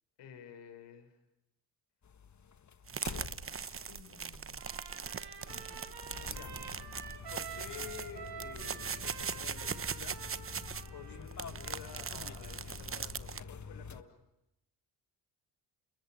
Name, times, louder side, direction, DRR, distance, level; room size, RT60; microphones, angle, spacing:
voice 1, 0.2-1.2 3.9-4.7 6.3-6.6 7.3-10.2 10.9-14.3, left 7 dB, 80° left, 7 dB, 5.1 m, -51 dB
sound 1, 2.0-14.0, left 6 dB, 45° left, 1.6 m, -48 dB
sound 2, 2.9-13.4, right 6 dB, 30° right, 0.9 m, -40 dB
Trumpet, 4.6-12.7, right 6 dB, 70° right, 7.8 m, -49 dB
28.0 x 22.0 x 8.9 m, 0.86 s
cardioid pair, 75°, 41 cm